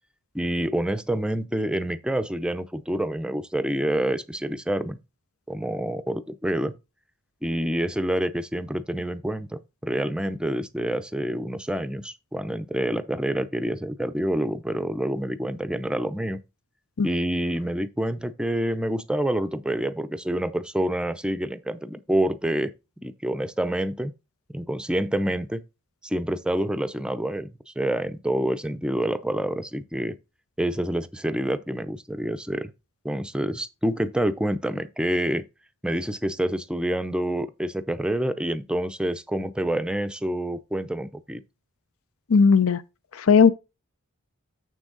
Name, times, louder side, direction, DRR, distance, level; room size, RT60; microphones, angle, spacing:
voice 1, 0.3-5.0 5.5-6.7 7.4-16.4 17.0-22.7 23.0-24.1 24.5-25.6 26.0-30.2 30.6-32.7 33.0-35.4 35.8-41.4, right 1 dB, 5° right, 0.5 m, -27 dB
voice 2, 42.3-42.8 43.1-43.5, left 5 dB, 65° left, 0.6 m, -17 dB
7.1 x 6.2 x 3.9 m
head